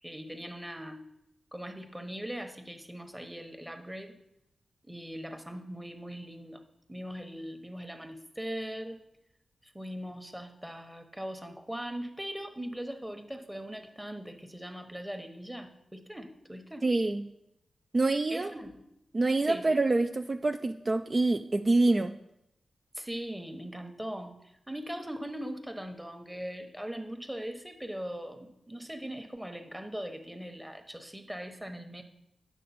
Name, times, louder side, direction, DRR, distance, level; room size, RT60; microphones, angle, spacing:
voice 1, 0.0-1.0 1.5-4.1 4.8-6.6 6.9-9.0 9.6-16.9 18.3-18.8 19.4-19.7 22.9-32.0, equal, 10° right, 6 dB, 1.1 m, -40 dB
voice 2, 16.8-17.2 17.9-18.5 19.1-22.1, right 2 dB, 40° right, 6 dB, 0.4 m, -26 dB
9.1 x 6.5 x 4.3 m, 0.84 s
cardioid pair, 60°, 0 cm